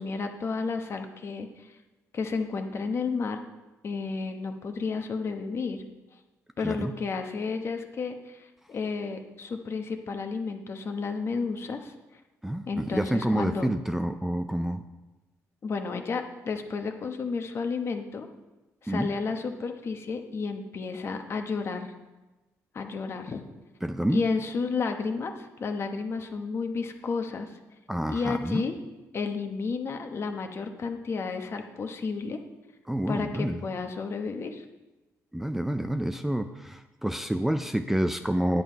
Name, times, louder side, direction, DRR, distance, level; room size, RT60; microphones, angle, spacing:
voice 1, 0.0-1.7 2.1-3.4 3.8-5.8 6.6-11.9 12.7-13.7 15.6-18.3 18.8-21.9 22.7-23.4 24.1-27.5 28.1-28.7 29.1-32.4 33.1-34.6, left 4 dB, 45° left, 5 dB, 1.1 m, -32 dB
voice 2, 6.6-6.9 12.4-14.8 18.9-19.1 23.8-24.2 27.9-28.6 32.9-33.6 35.3-38.6, right 1 dB, 5° right, 8 dB, 0.4 m, -28 dB
10.0 x 7.7 x 4.5 m, 1.1 s
cardioid pair, 95°, 6 cm